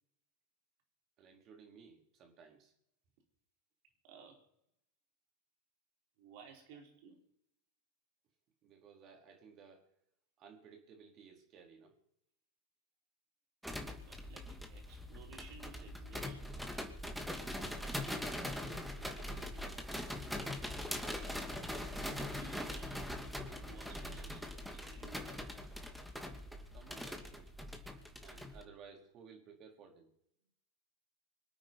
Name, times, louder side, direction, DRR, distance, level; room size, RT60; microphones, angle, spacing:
voice 1, 1.2-2.7 8.6-9.9 10.4-12.0 18.1-20.9 26.4-27.5 28.2-30.1, right 6 dB, 40° right, 2 dB, 4.5 m, -58 dB
voice 2, 4.0-4.4 6.2-7.2 14.0-16.7 21.9-23.1 23.5-25.4, right 5 dB, 60° right, 2 dB, 4.8 m, -57 dB
sound 1, 13.6-28.6, left 1 dB, ahead, 2.5 m, -42 dB
25.5 x 8.9 x 5.6 m, 0.77 s
hypercardioid pair, 95°, 0 cm